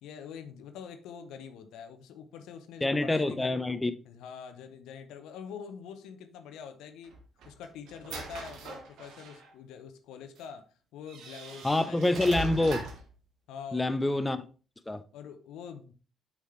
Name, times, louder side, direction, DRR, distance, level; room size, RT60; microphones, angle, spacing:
voice 1, 0.0-3.5 4.0-7.2 7.4-10.7 10.9-12.5 13.5-14.0 15.1-15.9, left 7 dB, 70° left, 0.8 m, -45 dB
voice 2, 2.8-3.9 11.6-12.8 13.7-14.5 14.9-15.0, left 2 dB, 20° left, 0.8 m, -26 dB
sound 1, 7.0-9.5 10.4-10.5 11.1-13.1, right 2 dB, 70° right, 1.6 m, -41 dB
8.0 x 6.1 x 3.3 m
hypercardioid pair, 45°, 0 cm